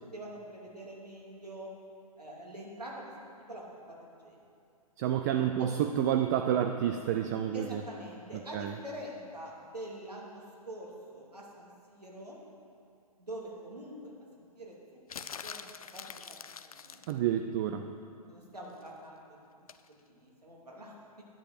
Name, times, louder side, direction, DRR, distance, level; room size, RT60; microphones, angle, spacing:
voice 1, 0.1-1.7 2.2-3.1 3.5-4.4 5.3-5.5 7.5-12.4 13.2-14.1 14.4-14.8 15.1-16.3 16.7-17.0 18.3-21.2, right 1 dB, 85° right, -3 dB, 2.9 m, -45 dB
voice 2, 5.0-7.8 8.3-8.7 17.1-17.9, right 10 dB, 30° right, 6 dB, 0.4 m, -29 dB
sound 1, 15.1-17.2 19.7-19.9, left 6 dB, 65° left, 0.6 m, -44 dB
10.5 x 10.0 x 6.6 m, 2.5 s
figure-of-eight pair, 120°, 20 cm